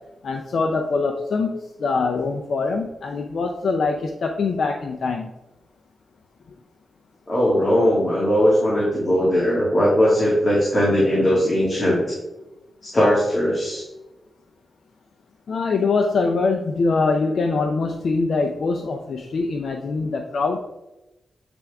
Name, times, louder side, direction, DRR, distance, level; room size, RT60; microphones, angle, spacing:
voice 1, 0.2-5.3 15.5-20.6, left 4 dB, 70° left, 2 dB, 0.5 m, -23 dB
voice 2, 7.3-12.0 12.8-13.8, equal, 35° left, -7 dB, 1.9 m, -19 dB
8.3 x 3.4 x 3.5 m, 0.99 s
cardioid pair, 90°, 0 cm